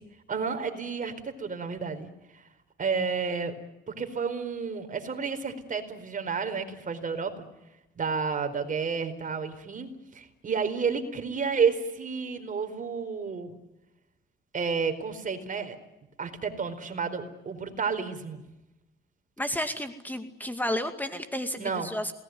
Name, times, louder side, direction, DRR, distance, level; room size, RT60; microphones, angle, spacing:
voice 1, 0.3-2.4 2.8-3.5 3.9-7.5 7.9-13.6 14.5-15.8 16.2-18.4 21.6-21.9, right 5 dB, 40° right, 7 dB, 4.5 m, -31 dB
voice 2, 19.4-22.1, left 1 dB, 10° left, 8 dB, 2.2 m, -32 dB
27.5 x 19.5 x 9.5 m, 0.98 s
cardioid pair, 90°, 20 cm